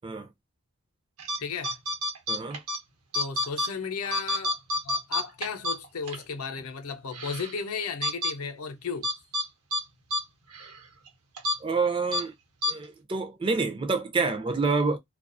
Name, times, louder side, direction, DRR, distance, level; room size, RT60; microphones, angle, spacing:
sound 1, 1.2-1.4 1.6-2.8 3.1-3.7 4.0-6.2 6.6-6.7 7.1-7.5 8.0-8.3 9.0-9.5 9.7-9.8 10.1-10.2 10.5-10.7 11.4-11.6 12.1-12.2 12.6-12.7, left 1 dB, 85° right, 0.8 m, -28 dB
voice 1, 1.4-1.8 3.1-4.6 4.8-9.1, left 5 dB, 80° left, 0.6 m, -34 dB
voice 2, 2.3-2.6 11.6-12.3 12.7-15.0, right 4 dB, 25° right, 0.4 m, -27 dB
2.3 x 2.3 x 2.4 m
head